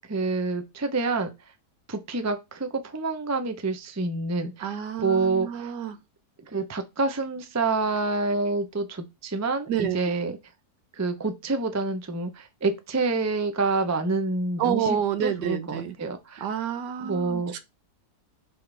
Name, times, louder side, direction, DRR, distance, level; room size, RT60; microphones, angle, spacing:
voice 1, 0.1-1.3 1.9-4.8 5.0-5.7 6.4-10.4 10.9-16.5 17.0-17.5, right 3 dB, 25° right, 0.3 m, -27 dB
voice 2, 4.6-6.0 9.7-10.0 14.6-15.9 16.4-17.6, right 8 dB, 80° right, 1.4 m, -28 dB
5.6 x 5.3 x 3.4 m
omnidirectional pair, 1.9 m